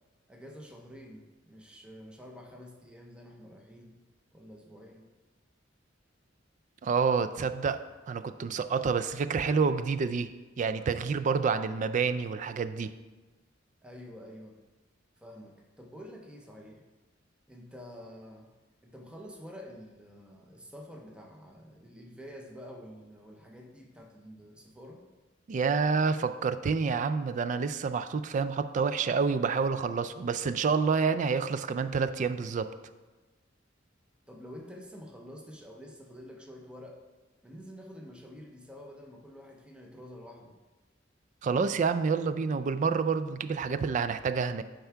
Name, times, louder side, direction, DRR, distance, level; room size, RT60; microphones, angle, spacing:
voice 1, 0.3-4.0 4.3-5.1 13.8-14.6 15.2-16.8 17.5-18.5 18.8-25.0 34.3-37.0 37.4-40.6, equal, 5° right, 1 dB, 0.7 m, -48 dB
voice 2, 6.8-7.8 8.1-10.3 10.6-12.9 25.5-32.7 41.4-44.6, right 5 dB, 40° right, 12 dB, 0.3 m, -28 dB
9.2 x 3.5 x 4.5 m, 1.2 s
head